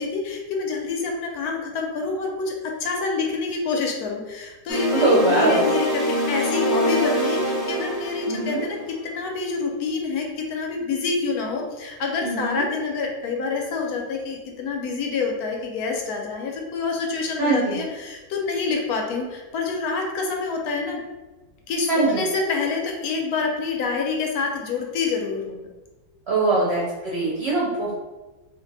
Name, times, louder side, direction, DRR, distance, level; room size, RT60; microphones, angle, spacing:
voice 1, 0.0-8.8 9.0-21.0 21.7-25.7, left 4 dB, 75° left, 1 dB, 1.0 m, -27 dB
sound 1, 4.7-9.0, equal, ahead, 0.4 m, -25 dB
voice 2, 4.9-5.7 8.3-8.6 12.2-12.6 17.4-17.8 21.9-22.2 26.3-27.9, right 2 dB, 55° right, -5 dB, 0.7 m, -22 dB
2.6 x 2.4 x 3.9 m, 1.2 s
omnidirectional pair, 1.7 m